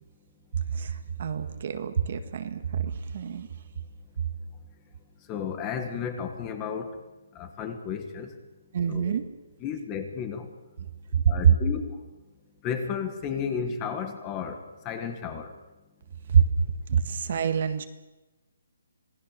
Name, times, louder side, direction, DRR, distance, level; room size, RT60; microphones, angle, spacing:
voice 1, 0.7-3.5 8.7-9.3 11.1-11.2 16.3-16.4 16.9-17.9, right 7 dB, 40° right, 9 dB, 1.7 m, -26 dB
voice 2, 5.3-7.0 7.3-8.3 8.9-9.2 9.6-10.5 11.3-12.0 12.6-15.5, left 7 dB, 15° left, 8 dB, 1.7 m, -33 dB
26.5 x 19.0 x 6.8 m, 1.1 s
hypercardioid pair, 170°, 0 cm